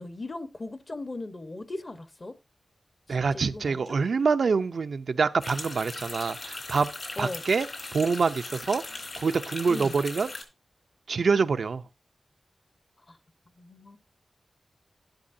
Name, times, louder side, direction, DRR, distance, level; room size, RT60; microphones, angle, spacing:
voice 1, 0.0-2.4 3.1-4.1 7.2-7.4 9.7-10.0 13.1-13.2 13.6-14.0, left 2 dB, 35° left, 1.1 m, -38 dB
voice 2, 3.1-6.9 7.2-7.7 7.9-8.8 9.2-10.3 11.1-11.8, right 5 dB, 80° right, 0.6 m, -25 dB
sound 1, 5.4-10.4, left 2 dB, 55° left, 3.8 m, -39 dB
12.0 x 11.5 x 2.7 m
wide cardioid pair, 90°, 0 cm